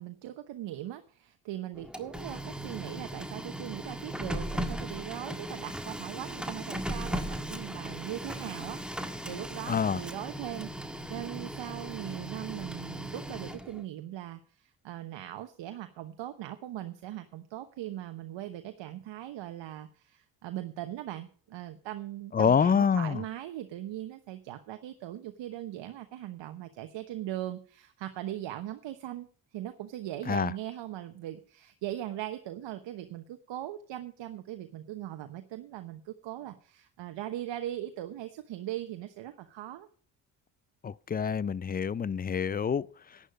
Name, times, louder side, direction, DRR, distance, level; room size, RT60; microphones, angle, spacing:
voice 1, 0.0-39.9, right 13 dB, 65° right, 1.1 m, -40 dB
Printer, 1.8-13.8, equal, ahead, 1.6 m, -38 dB
voice 2, 9.7-10.0 22.3-23.2 30.3-30.5 40.8-43.2, left 6 dB, 20° left, 0.4 m, -27 dB
11.0 x 9.9 x 5.3 m
hypercardioid pair, 50°, 47 cm